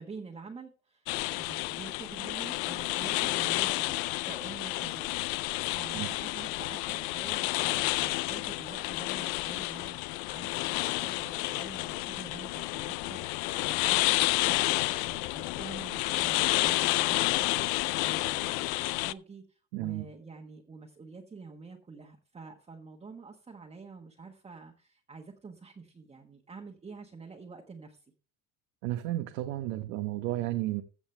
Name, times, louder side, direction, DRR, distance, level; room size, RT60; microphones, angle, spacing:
voice 1, 0.0-4.0 4.2-28.1, right 4 dB, 15° right, 1 dB, 1.4 m, -47 dB
sound 1, 1.1-19.1, left 21 dB, 70° left, 0.5 m, -30 dB
voice 2, 19.7-20.1 28.8-30.8, right 15 dB, 75° right, 7 dB, 1.2 m, -32 dB
15.0 x 7.2 x 3.3 m, 0.36 s
supercardioid pair, 125°, 40 cm